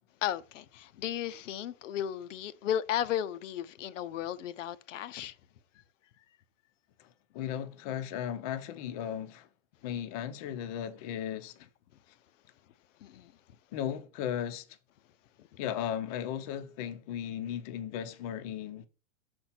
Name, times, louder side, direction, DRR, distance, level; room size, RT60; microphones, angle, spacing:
voice 1, 0.2-5.4 13.0-13.3 15.4-15.5, left 10 dB, 70° left, 0.7 m, -34 dB
voice 2, 7.3-9.5 9.8-11.7 13.7-14.7 15.6-18.9, left 9 dB, 30° left, 0.6 m, -36 dB
6.5 x 4.4 x 5.9 m
supercardioid pair, 160°, 39 cm